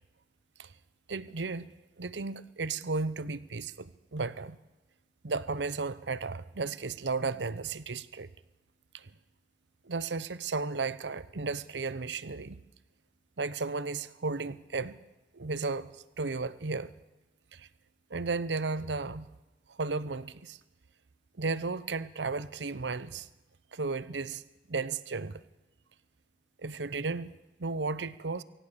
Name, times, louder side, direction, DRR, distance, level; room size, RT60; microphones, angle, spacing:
voice 1, 1.1-1.7 2.0-4.6 5.2-8.3 8.9-9.1 9.8-12.6 13.4-15.0 15.3-16.9 17.5-17.7 18.1-19.3 19.7-20.6 21.4-23.3 23.7-24.4 24.7-25.4 26.6-27.3 27.6-28.4, right 4 dB, 90° right, 17 dB, 0.8 m, -34 dB
23.5 x 17.5 x 6.8 m, 1.0 s
head